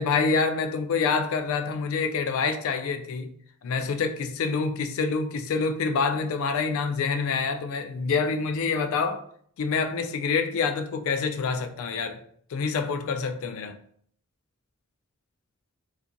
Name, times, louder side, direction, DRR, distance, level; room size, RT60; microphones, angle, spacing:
voice 1, 0.0-3.3 3.6-9.2 9.6-12.2 12.5-13.8, left 5 dB, 65° left, 0.3 m, -26 dB
2.5 x 2.5 x 2.6 m
head